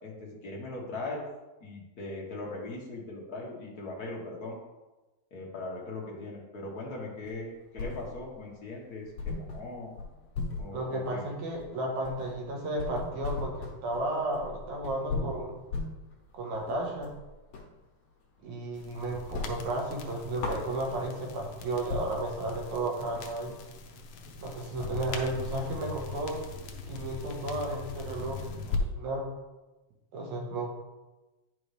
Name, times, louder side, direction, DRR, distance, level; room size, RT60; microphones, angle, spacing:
voice 1, 0.0-1.2 1.6-4.6 5.3-9.9 10.6-11.3 24.8-24.9, left 2 dB, 50° left, -3 dB, 1.2 m, -40 dB
sound 1, 7.2-8.4 8.7-8.8 9.2-17.8 18.1-18.9 19.2-21.2 21.6-21.7 21.9-26.0, left 3 dB, 65° left, 2.1 m, -38 dB
voice 2, 10.7-15.5 16.3-17.1 18.4-23.6 24.4-26.4 26.9-28.4 28.7-29.3 30.1-30.7, right 1 dB, 75° right, 0 dB, 2.6 m, -33 dB
sound 2, 18.7-28.8, left 4 dB, 85° left, 1.2 m, -40 dB
9.3 x 5.4 x 3.3 m, 1.1 s
omnidirectional pair, 3.4 m